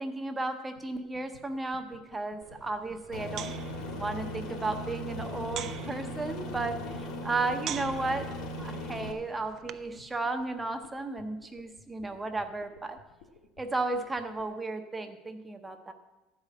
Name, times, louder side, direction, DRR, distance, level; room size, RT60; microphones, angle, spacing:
voice 1, 0.0-3.5 3.9-13.0 13.6-15.9, right 3 dB, 10° right, 6 dB, 0.7 m, -34 dB
sound 1, 0.8-14.5, left 5 dB, 85° left, 1.3 m, -55 dB
sound 2, 2.4-10.0, right 10 dB, 40° right, 0.3 m, -45 dB
Aircraft, 3.1-9.1, left 1 dB, 60° left, 1.6 m, -38 dB
12.5 x 4.9 x 8.5 m, 1.1 s
cardioid pair, 170°, 0 cm